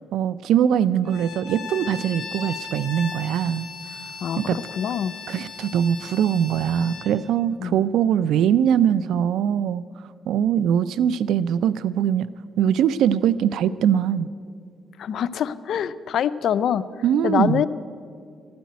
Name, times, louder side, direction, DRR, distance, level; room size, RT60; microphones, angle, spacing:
voice 1, 0.0-3.7 4.4-4.6 5.3-9.8 10.3-12.3 12.6-14.3 17.0-17.6, right 9 dB, 80° right, 17 dB, 0.3 m, -22 dB
Bowed string instrument, 1.1-7.1, left 5 dB, 55° left, 3.2 m, -37 dB
voice 2, 4.2-5.1 7.6-7.9 15.0-16.8 17.2-17.7, left 9 dB, 70° left, 15 dB, 0.5 m, -25 dB
13.0 x 10.5 x 9.3 m, 2.3 s
cardioid pair, 90°, 0 cm